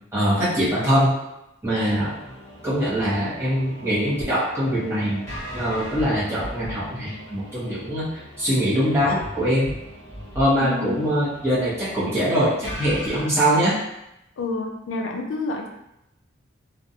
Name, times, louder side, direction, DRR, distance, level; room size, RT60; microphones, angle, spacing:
voice 1, 0.1-1.2 1.6-2.2 2.6-5.3 5.5-8.0 8.4-9.8 10.3-13.8, equal, 15° right, -10 dB, 0.9 m, -22 dB
sound 1, 1.9-13.2, equal, 15° left, 1.0 m, -39 dB
voice 2, 10.6-11.1 14.4-15.7, left 3 dB, 85° left, 3 dB, 0.4 m, -29 dB
2.5 x 2.2 x 2.7 m, 0.84 s
head